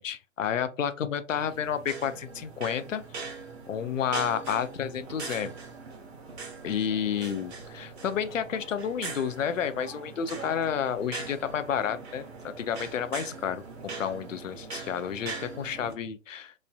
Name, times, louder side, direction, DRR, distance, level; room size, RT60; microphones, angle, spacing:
voice 1, 0.0-3.0 3.7-5.5 6.6-16.5, left 8 dB, 70° left, 0.5 m, -31 dB
sound 1, 1.4-15.9, right 4 dB, 55° right, 0.9 m, -41 dB
3.1 x 2.5 x 2.2 m
figure-of-eight pair, 130°, 40 cm